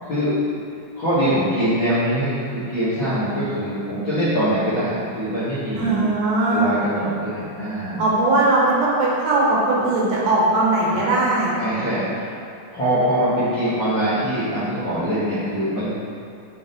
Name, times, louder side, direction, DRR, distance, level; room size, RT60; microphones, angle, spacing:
voice 1, 0.0-0.3 0.9-6.0 6.5-8.0 10.9-11.0 11.6-12.3 12.7-15.9, equal, 60° left, -13 dB, 1.3 m, -23 dB
voice 2, 5.8-6.6 8.0-11.6, right 2 dB, 70° right, -5 dB, 2.4 m, -19 dB
6.0 x 4.0 x 3.9 m, 2.5 s
omnidirectional pair, 4.2 m